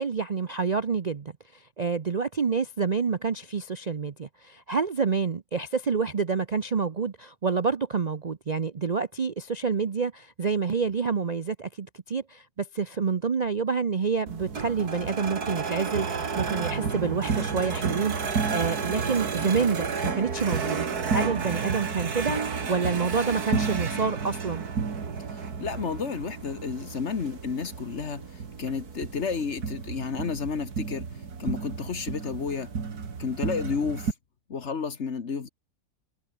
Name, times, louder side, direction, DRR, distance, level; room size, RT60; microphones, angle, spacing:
voice 1, 0.0-20.9 21.1-24.6, right 5 dB, 40° right, 0.6 m, -28 dB
sound 1, 14.3-34.1, right 5 dB, 80° right, 2.7 m, -31 dB
voice 2, 25.3-31.1 31.4-32.7 33.2-34.1 34.5-35.5, left 5 dB, 50° left, 1.7 m, -31 dB
omnidirectional pair, 1.6 m